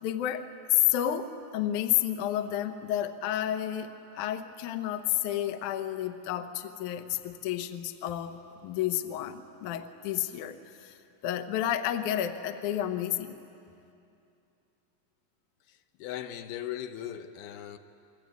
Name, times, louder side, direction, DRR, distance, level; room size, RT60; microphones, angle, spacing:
voice 1, 0.0-1.3 1.5-10.6 10.8-10.9 11.2-13.4, left 12 dB, 65° left, 9 dB, 2.2 m, -30 dB
voice 2, 15.7-17.8, left 11 dB, 90° left, 7 dB, 3.0 m, -39 dB
29.0 x 21.5 x 9.4 m, 2.7 s
omnidirectional pair, 4.3 m